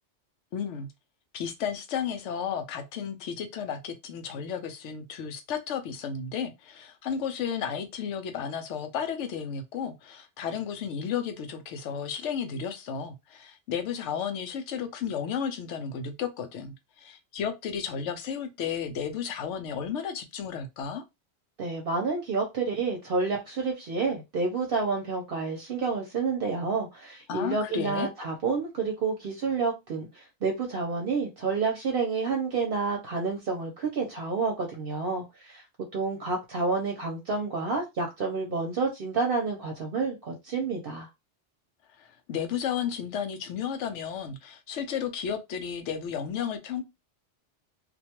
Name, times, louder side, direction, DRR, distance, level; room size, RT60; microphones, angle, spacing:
voice 1, 0.5-0.9 1.3-21.0 27.3-28.1 42.0-46.8, left 7 dB, 85° left, 0.9 m, -33 dB
voice 2, 21.6-35.6 35.9-41.1, right 4 dB, 60° right, 0.8 m, -29 dB
2.5 x 2.2 x 2.8 m
omnidirectional pair, 1.2 m